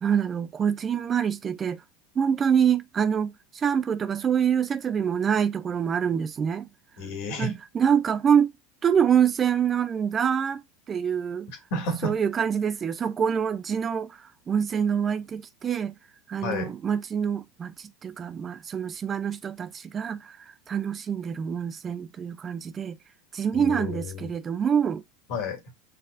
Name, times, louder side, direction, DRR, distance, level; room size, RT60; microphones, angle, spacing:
voice 1, 0.0-1.8 2.2-6.7 7.4-8.5 8.8-10.6 10.9-11.5 12.0-14.2 14.5-15.9 16.3-20.4 20.7-23.0 23.3-25.0, right 7 dB, 30° right, 0.5 m, -25 dB
voice 2, 7.0-7.6 11.7-12.2 16.4-16.8 23.5-24.3 25.3-25.6, left 2 dB, 65° left, 2.2 m, -31 dB
5.3 x 4.2 x 2.3 m
hypercardioid pair, 95°, 0 cm